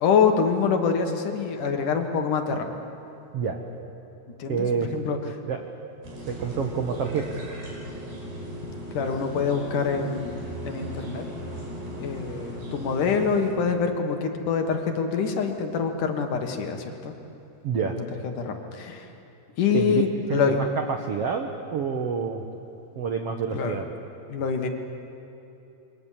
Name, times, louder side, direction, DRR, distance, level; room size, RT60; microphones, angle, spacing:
voice 1, 0.0-2.7 4.4-5.2 8.9-11.2 12.0-17.1 17.9-19.1 19.6-20.6 23.5-23.8 24.3-24.7, left 6 dB, 60° left, 5 dB, 2.8 m, -25 dB
voice 2, 4.5-4.9 5.5-5.6 6.3-7.4 17.6-18.0 19.7-20.0 20.3-22.4 22.9-23.9, right 6 dB, 70° right, 4 dB, 1.5 m, -28 dB
sound 1, 6.0-13.5, equal, 85° right, 7.1 m, -37 dB
27.5 x 23.5 x 7.4 m, 3.0 s
omnidirectional pair, 4.5 m